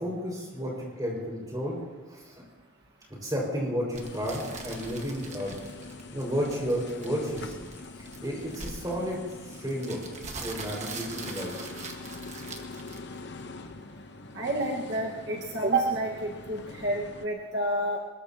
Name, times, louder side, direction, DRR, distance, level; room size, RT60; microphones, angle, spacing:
voice 1, 0.0-1.8 2.1-2.4 3.2-5.6 6.1-7.7 8.0-10.0 10.4-11.5, equal, 20° right, -2 dB, 5.2 m, -32 dB
sound 1, 3.9-13.4, right 4 dB, 35° right, 1.5 m, -43 dB
sound 2, 4.0-17.3, left 3 dB, 55° left, 0.9 m, -44 dB
voice 2, 14.3-18.0, right 2 dB, 55° right, -2 dB, 1.6 m, -29 dB
23.5 x 21.0 x 2.9 m, 1.3 s
head